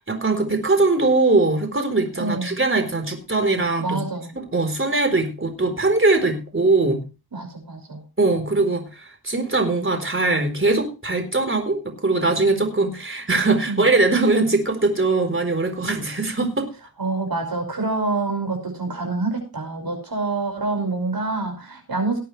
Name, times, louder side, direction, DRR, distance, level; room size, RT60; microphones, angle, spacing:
voice 1, 0.0-4.0 4.3-7.0 8.2-16.7, right 3 dB, 30° right, 6 dB, 4.2 m, -21 dB
voice 2, 2.2-2.6 3.8-4.3 7.3-8.0 13.7-13.8 17.0-22.2, right 3 dB, 65° right, 3 dB, 5.7 m, -26 dB
19.5 x 8.6 x 3.3 m, 0.30 s
wide cardioid pair, 65°, 38 cm